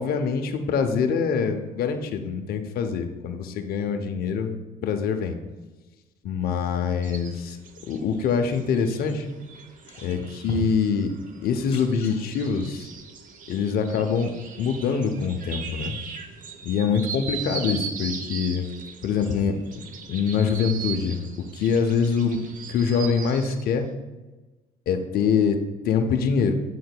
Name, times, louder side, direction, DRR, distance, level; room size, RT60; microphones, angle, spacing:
voice 1, 0.0-4.6 4.8-5.4 6.2-7.6 7.9-9.3 10.0-11.1 11.4-12.9 13.5-16.0 16.6-18.6 19.0-21.2 21.5-22.4 22.7-23.9 24.9-26.5, left 6 dB, 65° left, 5 dB, 0.7 m, -24 dB
sound 1, 7.0-23.6, right 6 dB, 50° right, 0.7 m, -39 dB
sound 2, 9.7-10.9 11.4-12.7 13.8-13.9, left 5 dB, 40° left, 1.8 m, -36 dB
7.7 x 5.7 x 2.2 m, 1.2 s
cardioid pair, 110°, 17 cm